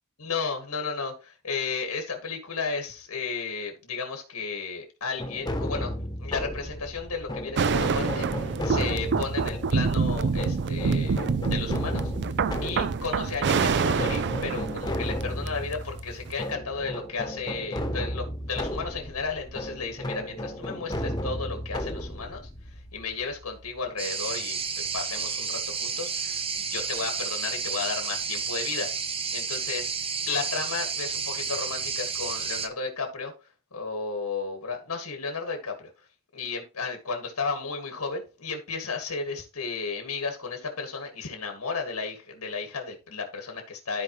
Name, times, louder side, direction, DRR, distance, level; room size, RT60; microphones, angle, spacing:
voice 1, 0.2-5.9 6.2-12.1 12.6-24.6 24.9-28.9 29.3-29.9 30.3-33.3 33.7-36.1 36.3-44.0, left 4 dB, 90° left, 3 dB, 1.7 m, -33 dB
sound 1, 5.2-23.9, left 1 dB, 20° left, 1.2 m, -34 dB
sound 2, 7.6-15.7 16.3-16.4, right 5 dB, 55° right, 0.5 m, -27 dB
sound 3, 24.0-32.7, right 6 dB, 25° right, 0.8 m, -31 dB
13.5 x 4.7 x 3.0 m, 0.33 s
head